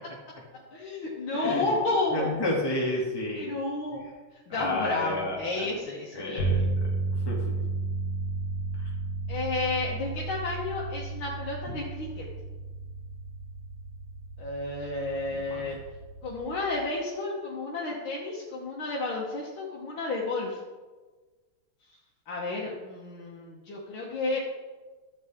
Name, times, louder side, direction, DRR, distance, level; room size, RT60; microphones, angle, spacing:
voice 1, 0.7-2.3 3.4-4.0 4.5-6.6 9.3-12.3 14.4-15.8 16.2-20.6 22.3-24.4, left 2 dB, 75° left, -4 dB, 2.1 m, -31 dB
voice 2, 1.3-1.6 2.1-3.5 4.5-5.7 6.2-6.6 7.3-7.4 15.5-15.6, left 1 dB, 10° left, -4 dB, 2.1 m, -30 dB
sound 1, 6.4-16.5, right 3 dB, 50° left, 2.4 m, -33 dB
12.5 x 8.2 x 3.6 m, 1.3 s
omnidirectional pair, 2.3 m